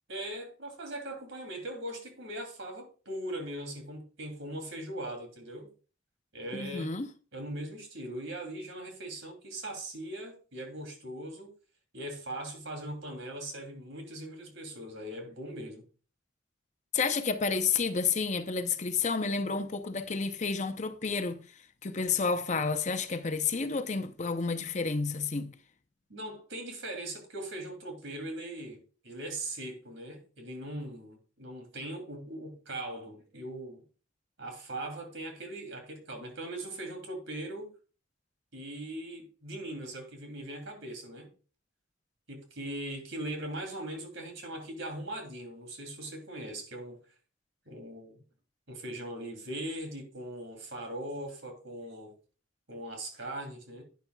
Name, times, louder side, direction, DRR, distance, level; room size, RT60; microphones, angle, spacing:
voice 1, 0.1-5.7 6.3-6.9 7.3-11.5 11.9-15.9 26.1-28.8 29.0-33.8 34.4-37.7 38.5-41.3 42.3-47.0 47.7-48.2 48.7-52.1 52.7-53.8, right 1 dB, 70° right, 2.8 m, -40 dB
voice 2, 6.5-7.1 16.9-25.5, left 5 dB, 35° left, 0.7 m, -30 dB
12.0 x 9.3 x 2.3 m
head